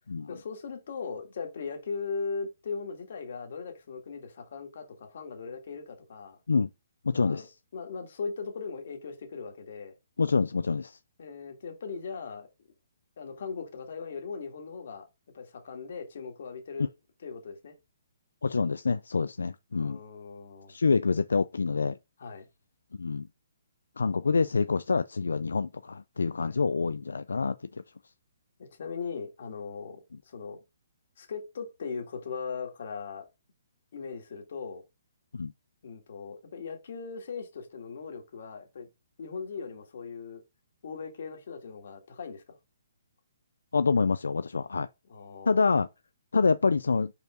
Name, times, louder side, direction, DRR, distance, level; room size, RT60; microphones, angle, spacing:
voice 1, 0.3-6.4 7.1-7.5 7.7-9.9 11.2-12.5 13.2-15.1 15.3-16.9 17.2-17.7 19.8-20.7 22.2-22.5 26.4-26.5 28.6-30.6 31.2-33.3 33.9-34.8 35.8-38.9 39.2-40.4 40.8-42.6 45.1-45.7, left 5 dB, 60° left, 2.0 m, -39 dB
voice 2, 7.1-7.5 10.2-11.0 18.4-20.0 20.7-22.0 23.0-23.3 24.0-27.6 35.3-35.5 43.7-44.9 45.5-45.9 46.3-47.1, left 4 dB, 90° left, 0.3 m, -26 dB
5.4 x 4.6 x 3.8 m
hypercardioid pair, 150°, 0 cm